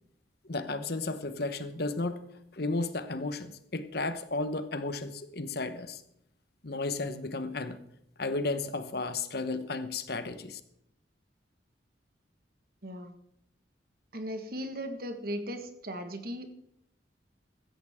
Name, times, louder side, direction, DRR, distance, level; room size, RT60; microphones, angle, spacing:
voice 1, 0.4-2.3 2.5-6.0 6.6-7.8 8.2-10.6, left 3 dB, 60° left, 10 dB, 1.1 m, -33 dB
voice 2, 12.8-13.1 14.1-16.5, equal, 55° right, 7 dB, 1.7 m, -37 dB
16.0 x 13.5 x 3.7 m, 0.75 s
head